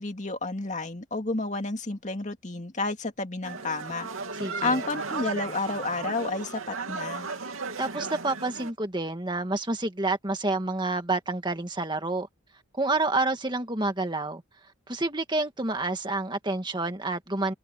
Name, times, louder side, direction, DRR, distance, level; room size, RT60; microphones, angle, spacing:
voice 1, 0.0-4.1 4.6-7.3, left 3 dB, 35° left, 2.3 m, -31 dB
sound 1, 3.4-8.7, right 4 dB, 85° right, 2.8 m, -35 dB
voice 2, 4.4-4.8 7.8-12.3 12.8-14.4 14.9-17.5, right 2 dB, 20° right, 1.8 m, -28 dB
head